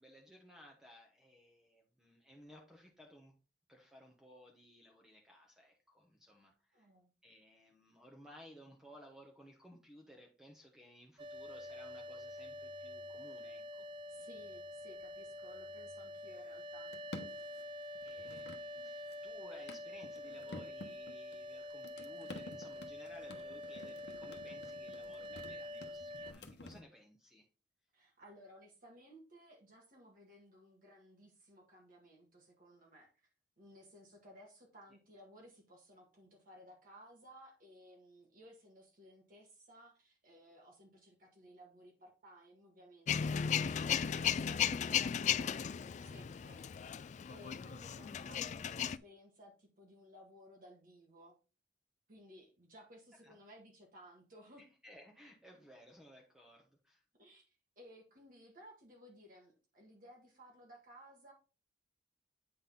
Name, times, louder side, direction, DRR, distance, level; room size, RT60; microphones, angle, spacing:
voice 1, 0.0-3.3 3.7-6.9 7.2-13.9 18.0-27.5 47.7-48.0 53.2-53.4 54.6-57.0, equal, 5° right, 0 dB, 1.0 m, -59 dB
voice 2, 6.7-7.1 14.1-16.9 27.9-33.3 33.6-51.4 52.1-54.7 57.1-61.3, equal, 50° right, 0 dB, 1.8 m, -58 dB
sound 1, 11.2-26.8, left 2 dB, 75° left, 0.9 m, -54 dB
sound 2, 11.2-26.3, left 1 dB, 30° right, 0.5 m, -47 dB
Male speech man speaking / Vehicle / Engine starting, 43.1-49.0, left 8 dB, 40° left, 0.3 m, -35 dB
8.5 x 3.9 x 3.8 m, 0.33 s
head